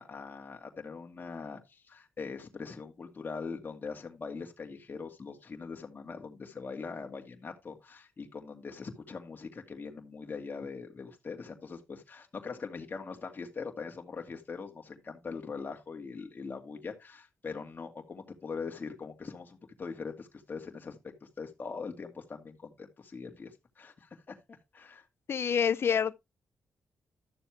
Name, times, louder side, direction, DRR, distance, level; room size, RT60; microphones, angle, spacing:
voice 1, 0.0-21.0 21.4-24.3 24.7-25.0, left 5 dB, 40° left, 2.1 m, -42 dB
voice 2, 25.3-26.1, left 7 dB, 60° left, 0.7 m, -27 dB
12.5 x 7.0 x 3.3 m
cardioid pair, 70°, 5 cm